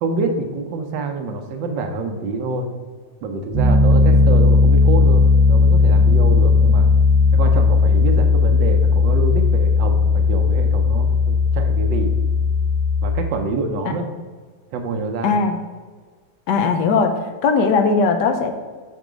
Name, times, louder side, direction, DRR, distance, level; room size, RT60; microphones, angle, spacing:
voice 1, 0.0-2.7 3.2-6.9 7.3-12.2 13.0-14.1 14.7-15.4, right 3 dB, 90° right, 5 dB, 1.5 m, -26 dB
Piano, 3.5-13.1, left 4 dB, 20° right, 0.9 m, -15 dB
voice 2, 15.2-15.6 16.5-17.1 17.4-18.5, left 4 dB, 75° left, 6 dB, 1.2 m, -18 dB
5.2 x 4.6 x 5.0 m, 1.5 s
omnidirectional pair, 1.9 m